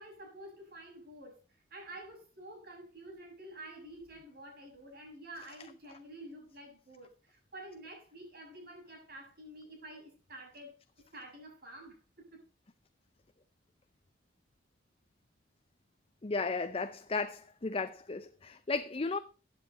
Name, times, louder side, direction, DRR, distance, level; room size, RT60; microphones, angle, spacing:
voice 1, 0.0-1.4 1.7-10.7 11.1-12.4, right 1 dB, 50° right, 6.8 m, -49 dB
voice 2, 16.2-19.2, left 3 dB, 30° left, 0.5 m, -34 dB
15.5 x 9.3 x 4.1 m
head